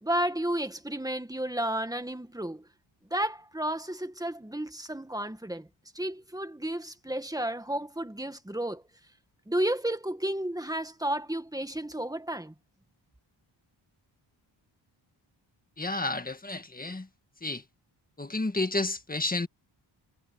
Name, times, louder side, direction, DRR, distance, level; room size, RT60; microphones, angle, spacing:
voice 1, 0.0-2.7 3.1-5.7 5.9-8.8 9.5-12.5, right 1 dB, 10° right, 1.9 m, -32 dB
voice 2, 15.8-17.1 17.4-17.6 18.2-19.5, left 2 dB, 20° left, 1.7 m, -31 dB
wide cardioid pair, 110°, 48 cm